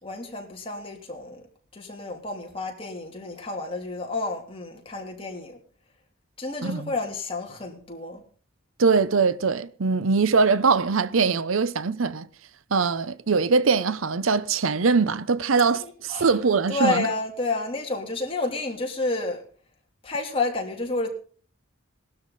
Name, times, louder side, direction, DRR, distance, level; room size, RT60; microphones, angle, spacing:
voice 1, 0.0-1.4 1.7-5.6 6.4-8.2 15.8-16.3 16.7-19.4 20.0-21.1, left 2 dB, 25° left, 3.3 m, -30 dB
voice 2, 8.8-12.3 12.7-17.1, right 4 dB, 80° right, 0.7 m, -22 dB
19.0 x 12.5 x 4.1 m
head